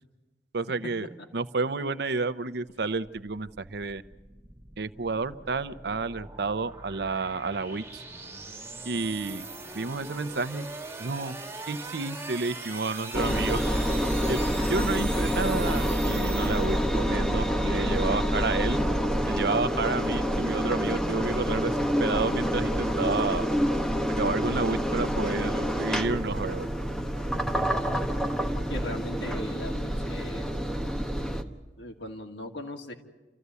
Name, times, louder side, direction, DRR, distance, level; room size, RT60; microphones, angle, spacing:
voice 1, 0.5-4.0 4.8-8.0 8.8-9.5 9.7-10.7 11.0-11.4 11.7-13.7 14.3-14.4 14.7-18.8 19.2-23.5 24.1-26.7, right 3 dB, 65° right, 13 dB, 0.8 m, -30 dB
sound 1, 2.7-17.1, right 3 dB, 15° right, 2.9 m, -42 dB
Engine, 13.1-31.4, equal, 5° left, 1.2 m, -27 dB
voice 2, 28.7-30.5 31.8-32.9, left 1 dB, 80° left, 2 dB, 2.6 m, -38 dB
29.5 x 14.0 x 8.3 m, 1.3 s
head